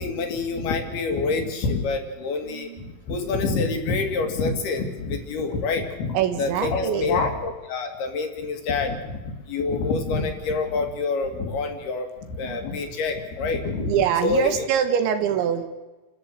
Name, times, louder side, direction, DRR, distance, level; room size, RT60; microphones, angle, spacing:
voice 1, 0.0-9.2 9.5-13.9 14.2-14.5, left 4 dB, 60° left, 5 dB, 3.8 m, -26 dB
voice 2, 2.5-2.9 6.1-7.2 12.4-12.6 13.8-15.7, right 9 dB, 75° right, 8 dB, 3.7 m, -24 dB
29.0 x 13.5 x 8.0 m, 1.2 s
omnidirectional pair, 5.5 m